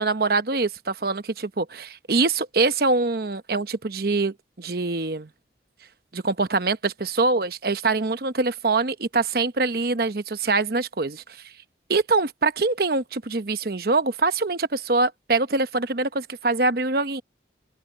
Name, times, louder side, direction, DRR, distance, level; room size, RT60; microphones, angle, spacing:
voice 1, 0.0-5.3 6.1-11.2 11.9-17.2, right 3 dB, 55° right, 0.9 m, -24 dB
open air
head